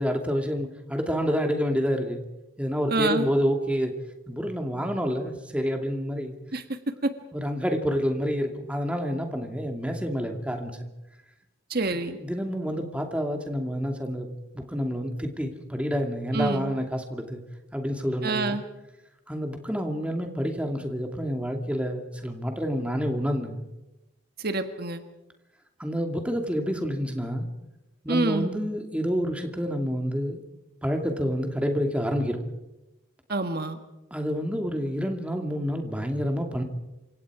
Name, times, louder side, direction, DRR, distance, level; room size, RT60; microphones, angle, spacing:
voice 1, 0.0-2.2 2.6-3.9 4.3-6.3 7.3-10.7 12.2-17.4 17.7-18.6 19.3-23.6 25.8-27.5 28.0-30.4 30.8-32.4 34.1-36.6, equal, 5° right, 4 dB, 2.4 m, -28 dB
voice 2, 2.9-3.2 6.5-6.6 11.7-12.2 16.3-16.7 18.2-18.6 24.4-25.0 28.1-28.5 33.3-33.8, right 3 dB, 50° right, 8 dB, 1.5 m, -27 dB
28.5 x 26.0 x 4.9 m, 0.97 s
head